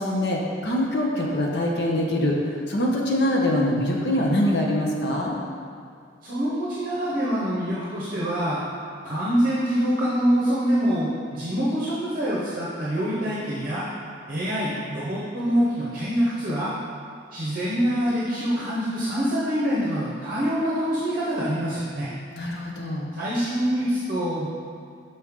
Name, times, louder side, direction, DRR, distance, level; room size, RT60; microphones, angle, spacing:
voice 1, 0.0-2.4 2.7-5.4 22.4-23.1, left 1 dB, 55° left, -1 dB, 0.9 m, -24 dB
voice 2, 6.2-8.6 9.0-13.9 14.3-16.7 17.3-22.1 23.1-24.5, equal, 45° right, -8 dB, 0.9 m, -25 dB
6.4 x 4.3 x 3.6 m, 2.4 s
head